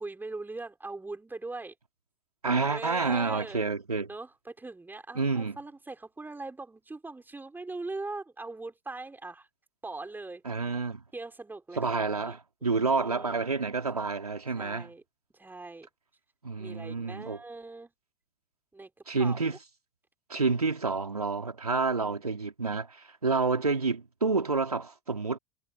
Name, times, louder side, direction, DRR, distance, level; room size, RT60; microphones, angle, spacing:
voice 1, 0.0-1.7 2.5-3.6 4.1-9.5 9.8-10.4 11.1-13.4 14.6-15.0 15.3-15.9 16.6-17.9 18.7-18.9 19.2-19.6 21.8-22.2, right 3 dB, 10° right, 5.2 m, -41 dB
voice 2, 2.4-4.1 5.1-5.6 10.4-11.0 11.7-14.9 16.4-17.4 19.1-19.6 20.3-25.4, right 4 dB, 85° right, 3.9 m, -29 dB
figure-of-eight pair, 80°, 19 cm